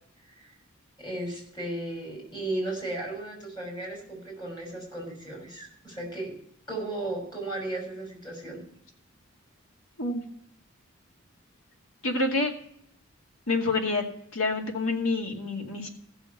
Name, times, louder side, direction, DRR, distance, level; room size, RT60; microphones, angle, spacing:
voice 1, 1.0-6.3 6.7-8.6, right 2 dB, 20° left, -2 dB, 6.1 m, -35 dB
voice 2, 12.0-12.5 13.5-14.0 14.3-15.9, left 2 dB, 75° left, 1 dB, 2.3 m, -27 dB
15.5 x 7.0 x 5.8 m, 0.70 s
head